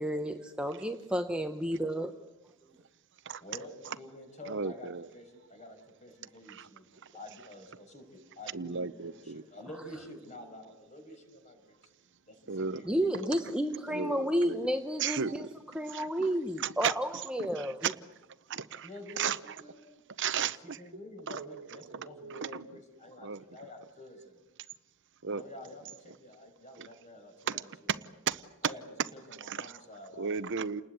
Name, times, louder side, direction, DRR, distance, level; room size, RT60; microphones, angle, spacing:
voice 1, 0.0-2.1 12.9-15.5 15.7-17.9, equal, 5° right, 5 dB, 1.0 m, -31 dB
voice 2, 3.4-11.8 12.3-13.6 18.8-20.0 20.3-20.4 20.6-24.4 25.3-27.7 28.6-28.8 29.1-30.3, left 1 dB, 35° left, 5 dB, 6.0 m, -49 dB
voice 3, 4.4-5.1 6.5-6.7 8.5-9.4 12.5-12.8 13.3-13.4 13.9-14.7 15.0-15.4 15.9-16.1 16.6-16.9 17.6-17.9 18.5-18.9 19.2-19.4 20.2-20.8 21.3-22.7 23.2-23.4 25.2-25.4 26.8-26.9 27.5-28.0 28.3-28.4 29.5-29.8 30.2-30.8, right 6 dB, 60° right, 13 dB, 0.8 m, -34 dB
29.5 x 20.0 x 8.1 m, 1.0 s
head